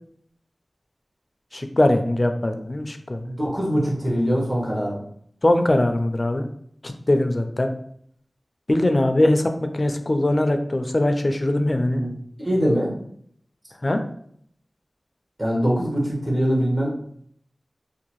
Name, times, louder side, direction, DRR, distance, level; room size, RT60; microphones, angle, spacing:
voice 1, 1.5-3.2 5.4-6.4 6.8-7.7 8.7-12.0 13.8-14.0, left 1 dB, 45° left, 7 dB, 0.4 m, -21 dB
voice 2, 3.2-5.0 11.9-12.1 12.4-12.9 15.4-17.0, equal, 45° right, -4 dB, 1.1 m, -23 dB
2.7 x 2.2 x 2.9 m, 0.65 s
wide cardioid pair, 45°, 0 cm